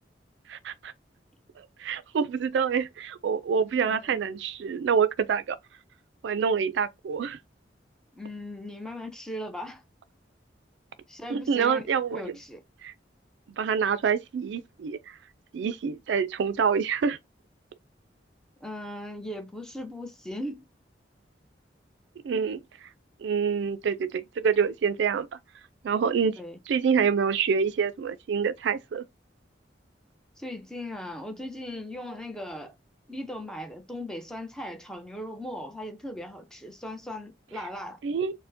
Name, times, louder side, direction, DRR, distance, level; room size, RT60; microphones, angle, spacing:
voice 1, 0.5-0.9 1.6-5.6 6.2-7.4 11.3-12.2 12.8-12.9 13.6-15.2 15.5-17.2 22.2-22.9 23.2-25.3 25.8-26.4 26.7-29.0 38.0-38.3, right 6 dB, 75° right, 0.3 m, -26 dB
voice 2, 3.8-4.2 8.1-9.8 11.1-11.8 12.1-12.6 18.6-20.7 26.4-26.6 30.4-32.8 33.1-38.0, left 1 dB, 5° left, 0.6 m, -38 dB
4.2 x 2.1 x 2.6 m
head